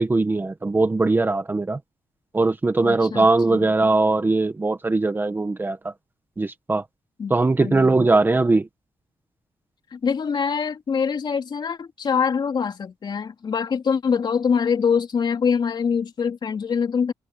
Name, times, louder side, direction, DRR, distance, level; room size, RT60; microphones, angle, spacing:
voice 1, 0.0-1.8 2.3-5.8 6.4-6.8 7.3-8.7, right 3 dB, 20° right, 1.2 m, -20 dB
voice 2, 2.8-3.7 7.2-8.1 9.9-17.1, left 6 dB, 45° left, 3.3 m, -24 dB
wide cardioid pair, 135°, 10 cm